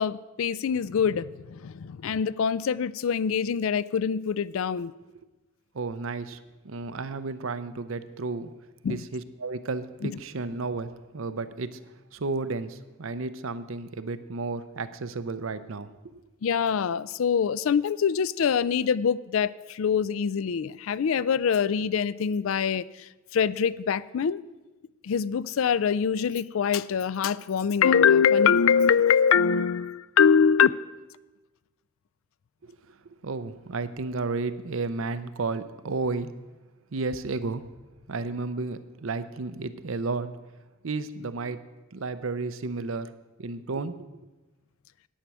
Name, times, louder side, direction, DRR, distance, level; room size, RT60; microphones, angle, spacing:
voice 1, 0.0-4.9 8.8-9.0 10.0-10.2 16.4-22.9 23.3-24.4 25.0-30.7, left 7 dB, 70° left, 18 dB, 0.4 m, -24 dB
voice 2, 5.7-6.4 6.6-8.5 8.9-11.8 12.1-16.2 33.2-36.3 36.9-37.6 38.1-40.3 40.8-41.6 41.9-43.1 43.4-44.1, right 3 dB, 65° right, 12 dB, 0.6 m, -32 dB
10.0 x 8.9 x 6.1 m, 1.1 s
head